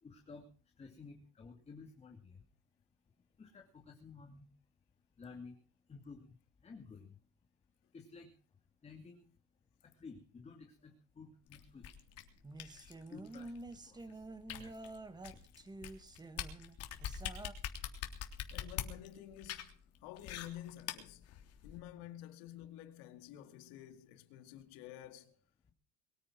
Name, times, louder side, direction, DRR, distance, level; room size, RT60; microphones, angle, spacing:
voice 1, 0.0-0.5 0.8-2.4 3.4-4.5 5.2-5.6 5.9-6.4 6.6-7.2 7.9-8.3 8.8-9.3 9.8-11.9 13.1-13.5 13.8-14.2 14.5-14.8, left 4 dB, 20° left, 2.5 m, -53 dB
sound 1, 11.5-21.8, left 10 dB, 50° left, 3.3 m, -45 dB
sound 2, 12.4-17.5, right 2 dB, 15° right, 1.6 m, -49 dB
voice 2, 18.5-19.7 20.0-21.3 21.6-25.4, left 12 dB, 85° left, 2.3 m, -50 dB
22.5 x 9.6 x 6.1 m
cardioid pair, 140°, 31 cm